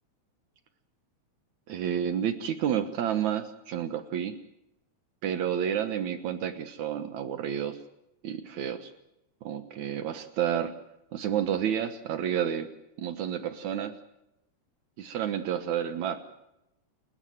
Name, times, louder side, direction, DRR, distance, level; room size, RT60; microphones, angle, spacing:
voice 1, 1.7-4.3 5.2-7.8 8.2-8.9 9.4-10.7 11.1-12.7 13.0-13.9 15.0-16.2, right 9 dB, 70° right, 9 dB, 2.6 m, -30 dB
30.0 x 13.0 x 9.2 m, 0.85 s
omnidirectional pair, 3.5 m